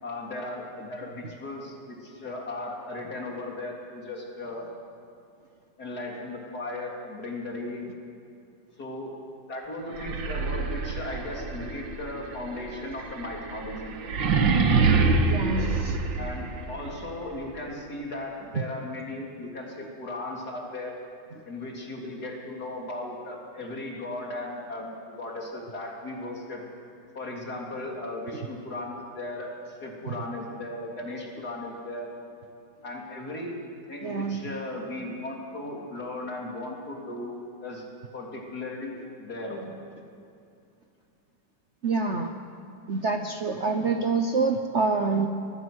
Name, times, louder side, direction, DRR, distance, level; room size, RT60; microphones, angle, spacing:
voice 1, 0.0-4.7 5.8-7.9 8.8-9.1 9.5-13.9 16.2-21.0 21.4-26.6 27.1-32.1 32.8-33.6 33.9-37.8 38.1-39.8, left 2 dB, 55° left, -1 dB, 4.0 m, -36 dB
sound 1, 9.9-16.8, right 4 dB, 80° right, 2.2 m, -26 dB
voice 2, 15.2-16.0 28.3-28.5 30.0-30.1 34.0-34.5 41.8-42.3 42.9-45.3, right 4 dB, 45° right, 5 dB, 1.0 m, -27 dB
25.0 x 19.5 x 6.4 m, 2.6 s
omnidirectional pair, 2.0 m